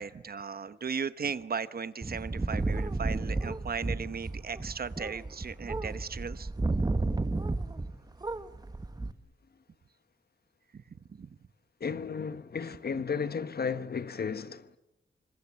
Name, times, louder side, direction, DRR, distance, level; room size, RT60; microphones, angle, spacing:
voice 1, 0.0-6.5 9.0-9.1 10.7-10.8 11.1-11.3, right 6 dB, 55° right, 1.0 m, -37 dB
sound 1, 2.0-8.0 8.2-9.1, right 2 dB, 20° right, 1.1 m, -32 dB
voice 2, 11.8-14.7, left 6 dB, 55° left, 1.2 m, -34 dB
27.5 x 25.5 x 7.5 m
wide cardioid pair, 175°, 19 cm